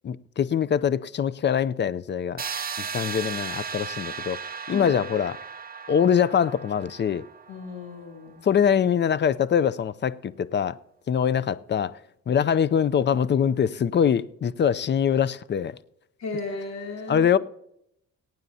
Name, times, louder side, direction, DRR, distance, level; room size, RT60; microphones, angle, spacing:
voice 1, 0.0-2.4 2.8-4.4 4.7-5.4 5.9-7.2 8.4-10.8 11.1-12.0 12.3-15.7 17.1-17.4, left 8 dB, 35° left, 0.5 m, -23 dB
sound 1, 2.4-8.2, right 6 dB, 30° right, 0.7 m, -36 dB
voice 2, 7.5-8.4 16.2-17.3, left 3 dB, 60° left, 3.0 m, -35 dB
22.5 x 9.2 x 2.8 m
cardioid pair, 90°, 30 cm